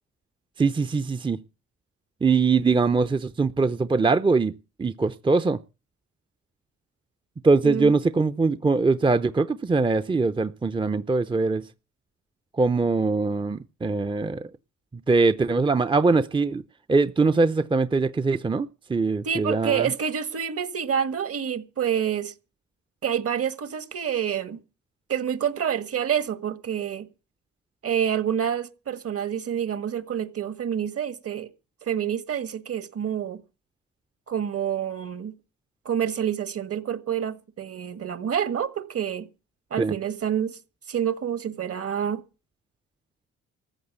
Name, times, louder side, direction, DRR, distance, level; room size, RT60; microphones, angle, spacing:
voice 1, 0.6-1.4 2.2-4.5 4.8-5.6 7.4-11.6 12.5-14.5 15.1-16.6 16.9-19.9 39.8-39.9, right 4 dB, 15° right, 0.6 m, -22 dB
voice 2, 19.2-22.3 23.0-24.6 25.1-27.1 27.8-31.5 31.8-33.4 34.3-35.3 35.8-39.3 39.7-40.6 40.9-42.2, right 8 dB, 50° right, 1.7 m, -27 dB
14.5 x 8.0 x 8.1 m
cardioid pair, 90°, 30 cm